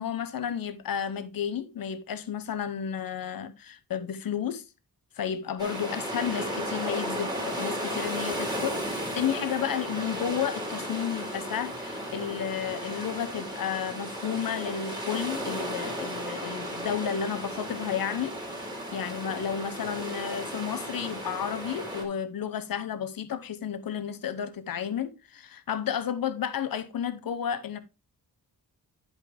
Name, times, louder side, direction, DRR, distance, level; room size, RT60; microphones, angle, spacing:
voice 1, 0.0-4.6 5.2-27.8, left 8 dB, 65° left, 0.8 m, -32 dB
sound 1, 5.6-22.0, equal, 10° right, 2.0 m, -34 dB
10.5 x 5.2 x 3.3 m
wide cardioid pair, 175°, 37 cm